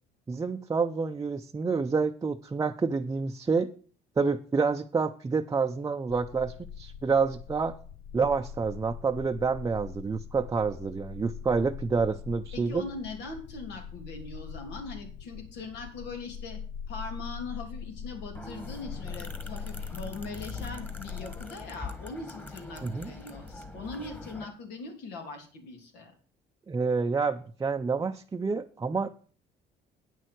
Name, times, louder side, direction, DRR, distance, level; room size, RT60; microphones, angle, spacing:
voice 1, 0.3-3.7 4.2-7.8 8.1-12.8 22.8-23.1 26.7-29.1, right 4 dB, 20° right, 4 dB, 0.6 m, -28 dB
sound 1, 6.1-21.5, left 7 dB, 70° left, 0.5 m, -42 dB
voice 2, 12.5-16.6 16.9-26.1, left 3 dB, 85° left, 3 dB, 3.1 m, -41 dB
sound 2, 18.4-24.5, left 3 dB, 10° left, 1.5 m, -42 dB
9.2 x 6.4 x 7.7 m, 0.42 s
cardioid pair, 110°, 17 cm